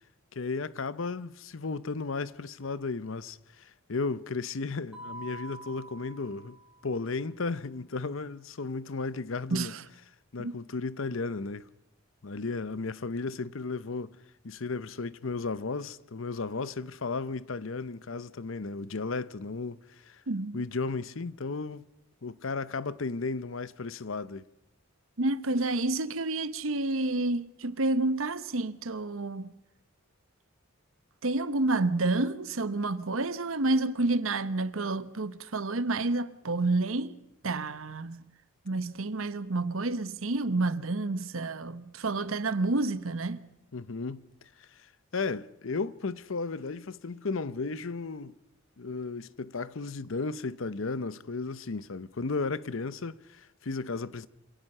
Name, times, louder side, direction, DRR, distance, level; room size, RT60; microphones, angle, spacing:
voice 1, 0.3-6.6 6.8-9.7 10.3-11.7 12.2-14.1 14.4-20.2 20.5-21.8 22.2-24.5 43.7-44.3 44.6-44.9 45.1-48.4 48.8-54.3, left 4 dB, 70° left, 0.7 m, -34 dB
Mallet percussion, 4.9-7.0, right 2 dB, 5° right, 2.5 m, -46 dB
voice 2, 9.5-9.8 10.4-10.5 20.3-20.6 25.2-29.5 31.2-37.1 37.4-38.2 38.7-43.4, right 2 dB, 75° right, 1.0 m, -29 dB
26.5 x 17.5 x 5.6 m
head